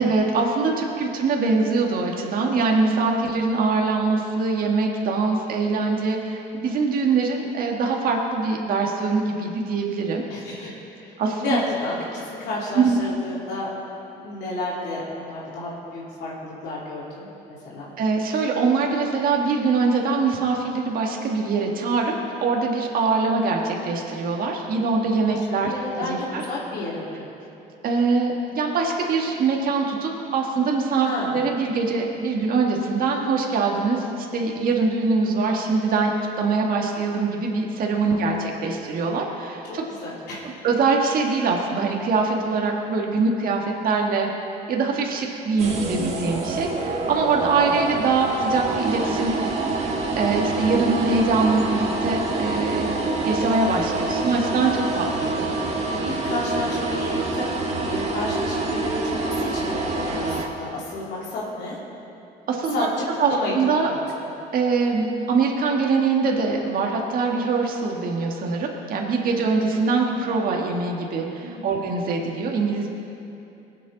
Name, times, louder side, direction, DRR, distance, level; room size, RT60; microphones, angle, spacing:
voice 1, 0.0-10.2 10.6-10.8 11.2-11.6 12.7-13.0 18.0-22.1 22.4-25.7 26.0-26.4 27.8-36.1 36.4-39.8 40.6-44.3 44.7-52.9 53.2-55.5 62.5-62.9 63.2-63.9 64.5-72.9, right 4 dB, 60° right, 0 dB, 1.6 m, -23 dB
voice 2, 10.3-10.7 11.0-13.7 14.2-17.9 25.3-27.3 31.0-31.4 38.1-38.3 40.0-40.6 47.6-47.9 55.9-61.8 62.7-62.9 63.3-64.0 71.4-71.8, left 2 dB, 80° left, -6 dB, 2.9 m, -31 dB
sound 1, 45.6-60.5, right 2 dB, 40° right, 1.7 m, -26 dB
19.5 x 8.4 x 3.9 m, 2.9 s
cardioid pair, 110°, 17 cm